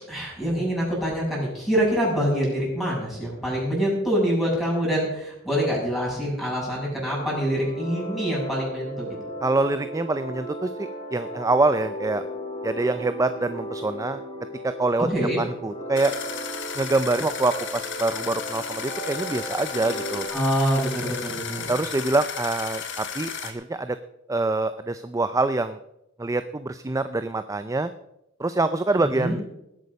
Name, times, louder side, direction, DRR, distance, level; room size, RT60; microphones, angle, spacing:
voice 1, 0.1-9.1 15.1-15.4 20.3-21.7 29.0-29.4, equal, ahead, -5 dB, 6.8 m, -25 dB
sound 1, 7.1-20.3, right 1 dB, 25° left, 3.7 m, -36 dB
voice 2, 9.4-12.2 12.6-14.2 14.6-15.1 15.4-16.1 16.8-20.3 21.7-24.0 24.3-25.8 26.2-27.9 28.4-29.4, right 2 dB, 15° right, 12 dB, 0.4 m, -25 dB
sound 2, 16.0-23.5, left 7 dB, 60° left, 1.8 m, -34 dB
19.5 x 8.4 x 5.3 m, 0.85 s
head